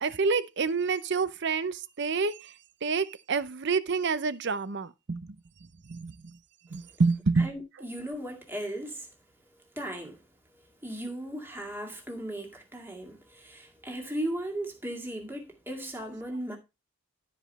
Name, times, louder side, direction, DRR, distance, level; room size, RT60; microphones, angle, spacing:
voice 1, 0.0-2.5 2.8-5.4 5.9-6.4 6.7-7.5, right 4 dB, 55° right, 0.6 m, -28 dB
voice 2, 7.4-9.2 9.5-10.2 10.5-16.6, right 1 dB, 10° right, 2.0 m, -37 dB
12.0 x 5.1 x 4.1 m
head